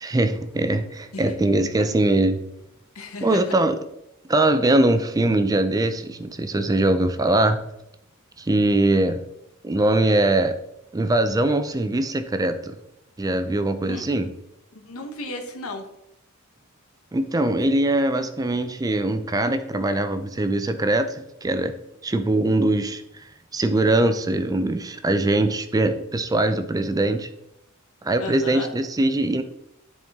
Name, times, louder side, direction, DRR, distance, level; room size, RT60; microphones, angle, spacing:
voice 1, 0.0-2.4 3.2-3.8 4.3-7.6 8.4-9.2 9.6-10.6 10.9-12.7 13.2-14.3 17.1-21.7 22.0-23.0 23.5-27.3 28.0-29.4, right 2 dB, 15° right, 9 dB, 0.4 m, -22 dB
voice 2, 2.9-3.4 13.8-14.1 14.7-15.8 28.2-28.7, left 2 dB, 75° left, 5 dB, 1.1 m, -34 dB
10.0 x 4.3 x 3.5 m, 0.83 s
head